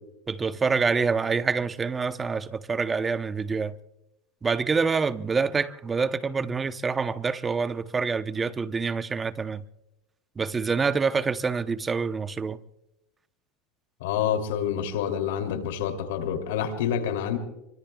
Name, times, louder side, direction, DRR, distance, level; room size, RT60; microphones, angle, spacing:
voice 1, 0.3-3.7 4.4-9.6 10.4-12.6, right 5 dB, 20° right, 0.8 m, -26 dB
voice 2, 14.0-17.4, left 8 dB, 85° left, 2.8 m, -27 dB
26.0 x 24.0 x 2.3 m
supercardioid pair, 130°, 0 cm